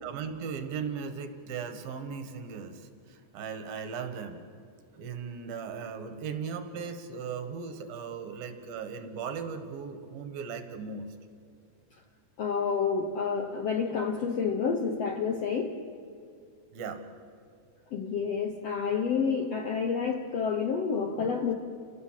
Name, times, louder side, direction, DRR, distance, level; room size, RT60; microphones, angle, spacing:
voice 1, 0.0-4.4 5.0-11.1 16.7-17.0, right 6 dB, 70° right, 7 dB, 3.1 m, -37 dB
voice 2, 12.4-15.8 17.9-21.6, left 6 dB, 80° left, 4 dB, 1.4 m, -29 dB
30.0 x 18.0 x 7.4 m, 2.3 s
omnidirectional pair, 4.5 m